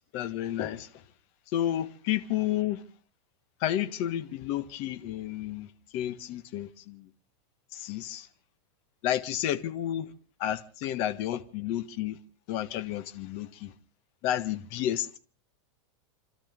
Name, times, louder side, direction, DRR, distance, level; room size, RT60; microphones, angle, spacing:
voice 1, 0.1-1.0 1.5-2.8 3.6-5.7 5.9-7.1 7.7-8.3 9.0-10.1 10.4-12.2 12.5-13.7 14.2-15.2, left 12 dB, 40° left, 1.6 m, -31 dB
29.5 x 13.0 x 3.8 m
supercardioid pair, 155°, 15 cm